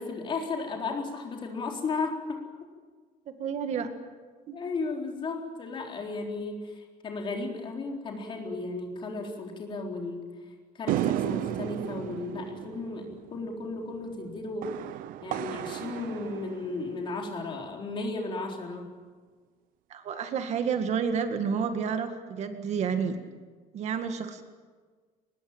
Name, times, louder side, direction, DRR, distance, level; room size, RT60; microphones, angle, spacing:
voice 1, 0.0-2.4 4.5-10.3 10.7-14.7 15.2-18.9, left 3 dB, 35° left, 2 dB, 4.0 m, -34 dB
voice 2, 3.3-3.9 4.5-4.6 19.9-23.2 23.7-24.4, right 6 dB, 50° right, 7 dB, 1.9 m, -30 dB
sound 1, 10.9-17.4, right 13 dB, 70° right, 0.8 m, -34 dB
23.0 x 20.5 x 8.8 m, 1.5 s
cardioid pair, 180°, 15 cm